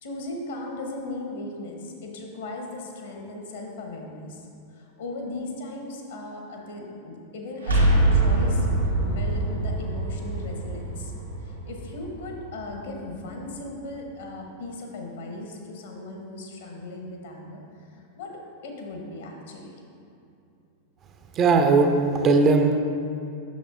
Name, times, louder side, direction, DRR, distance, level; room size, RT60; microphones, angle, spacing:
voice 1, 0.0-8.7 9.0-11.1 11.4-17.6 17.9-18.3 18.6-19.8, left 2 dB, 60° left, 1 dB, 1.0 m, -37 dB
sound 1, 7.6-13.3, right 2 dB, 80° right, 1.4 m, -24 dB
voice 2, 21.4-22.8, right 3 dB, 30° right, 5 dB, 0.5 m, -19 dB
8.4 x 6.5 x 2.5 m, 2.6 s
figure-of-eight pair, 90°, 0 cm